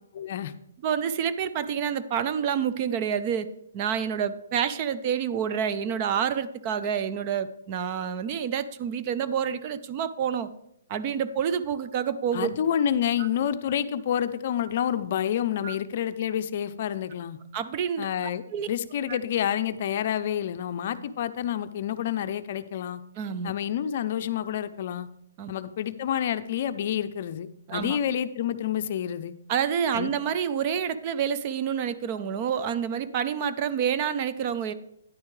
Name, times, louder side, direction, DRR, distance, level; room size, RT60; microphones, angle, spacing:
voice 1, 0.1-0.5 12.3-17.4 18.0-23.0 23.4-25.1 25.5-29.3 29.9-30.1, left 9 dB, 45° left, 11 dB, 0.5 m, -28 dB
voice 2, 0.8-3.5 3.7-10.5 10.9-12.5 13.2-13.3 15.6-15.7 17.5-18.1 18.5-18.7 19.1-19.2 23.2-23.5 25.4-25.5 27.7-28.0 29.5-34.7, right 8 dB, 30° right, 12 dB, 0.5 m, -28 dB
10.0 x 9.5 x 3.2 m, 0.73 s
hypercardioid pair, 155°, 0 cm